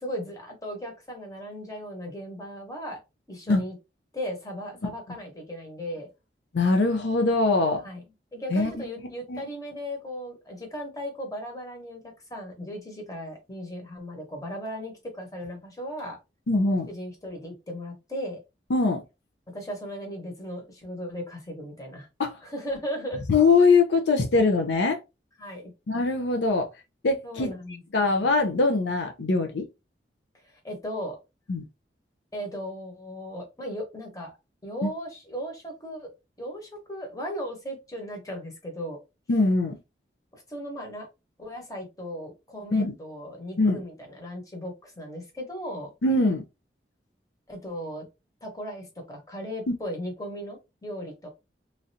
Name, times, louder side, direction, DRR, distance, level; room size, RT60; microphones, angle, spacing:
voice 1, 0.0-3.0 3.3-3.7 4.1-6.1 7.8-8.0 8.3-16.2 16.9-18.4 19.5-22.1 22.4-23.2 25.4-25.7 27.2-28.0 30.4-31.2 32.3-34.3 34.6-36.1 36.4-39.0 40.3-41.1 41.4-45.9 47.5-48.0 48.4-51.3, equal, 20° left, 1.0 m, -37 dB
voice 2, 6.5-7.8 8.5-8.8 9.3-9.4 16.5-16.9 18.7-19.0 22.2-22.4 23.3-25.0 25.9-26.7 27.0-27.5 27.9-29.7 31.5-31.6 34.8-34.9 39.3-39.7 42.7-42.9 43.6-43.8 46.0-46.4 49.7-49.8, left 3 dB, 80° left, 0.5 m, -22 dB
3.1 x 2.5 x 2.7 m
head